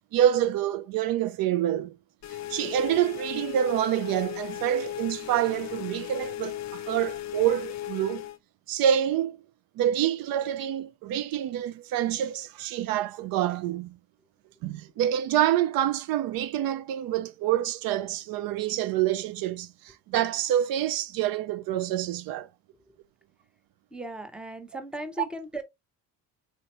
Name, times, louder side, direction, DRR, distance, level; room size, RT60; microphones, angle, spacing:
voice 1, 0.1-2.0 2.5-8.2 8.7-9.4 9.8-14.0 14.6-22.5, right 11 dB, 75° right, 0.5 m, -27 dB
Drone Scream, 2.2-8.4, left 13 dB, 50° left, 0.5 m, -37 dB
voice 2, 23.9-25.6, right 1 dB, 5° right, 0.7 m, -37 dB
4.3 x 2.8 x 2.9 m
cardioid pair, 120°, 35 cm